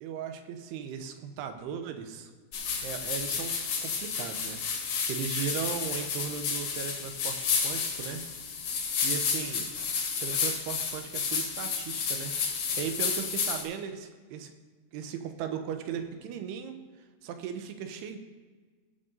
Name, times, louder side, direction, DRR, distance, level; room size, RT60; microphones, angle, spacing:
voice 1, 0.0-2.3 2.8-3.5 3.8-4.6 5.1-8.2 9.0-9.7 10.2-14.5 14.9-16.8 17.2-18.2, right 7 dB, 80° right, 7 dB, 2.6 m, -37 dB
sound 1, 2.5-13.6, left 5 dB, 70° left, 1.7 m, -31 dB
19.0 x 7.3 x 2.7 m, 1.4 s
omnidirectional pair, 5.2 m